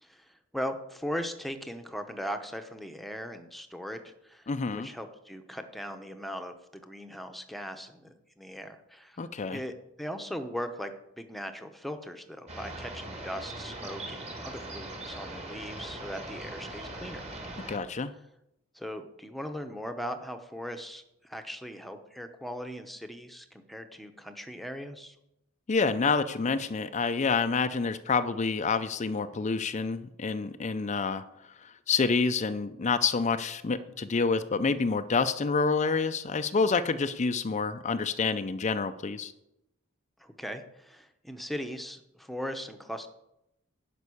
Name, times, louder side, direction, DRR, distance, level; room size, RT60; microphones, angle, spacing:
voice 1, 0.0-9.2 9.5-17.2 18.7-25.2 40.2-43.1, equal, ahead, 7 dB, 0.8 m, -39 dB
voice 2, 4.5-4.9 9.2-9.6 17.7-18.1 25.7-31.2 31.6-39.3, left 4 dB, 35° left, 10 dB, 0.4 m, -28 dB
sound 1, 12.5-17.8, right 1 dB, 30° right, 1.8 m, -40 dB
11.0 x 5.4 x 8.4 m, 0.84 s
head